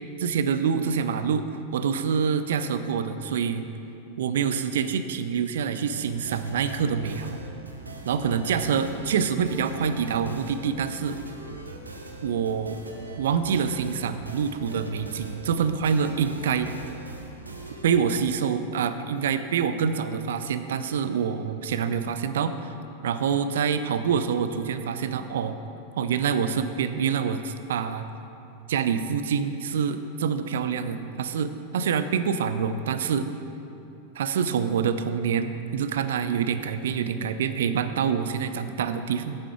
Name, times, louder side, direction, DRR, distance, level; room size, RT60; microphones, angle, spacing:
voice 1, 0.2-1.4 1.7-3.7 4.2-7.4 8.0-11.2 12.2-12.8 13.2-16.7 17.8-22.7 23.0-25.6 26.0-28.1 28.7-33.3 34.2-39.4, right 7 dB, 60° right, 10 dB, 0.5 m, -26 dB
sound 1, 5.9-17.9, right 2 dB, 80° right, 0.8 m, -41 dB
8.8 x 7.7 x 4.8 m, 2.8 s
figure-of-eight pair, 90°, 0 cm